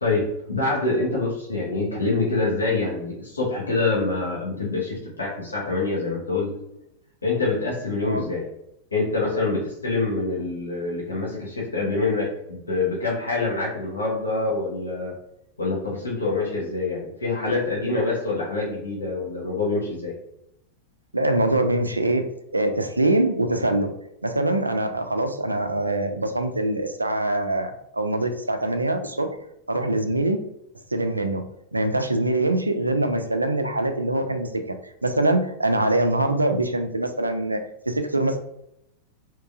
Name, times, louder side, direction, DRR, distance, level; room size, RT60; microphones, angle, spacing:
voice 1, 0.0-6.5 7.2-8.5 8.9-15.1 15.6-20.1, left 3 dB, 75° left, -5 dB, 1.0 m, -25 dB
voice 2, 21.1-23.9 24.2-29.4 29.7-30.4 30.9-31.4 31.7-38.4, right 1 dB, 85° right, 7 dB, 0.4 m, -24 dB
3.5 x 2.9 x 2.3 m, 0.79 s
figure-of-eight pair, 90°, 0 cm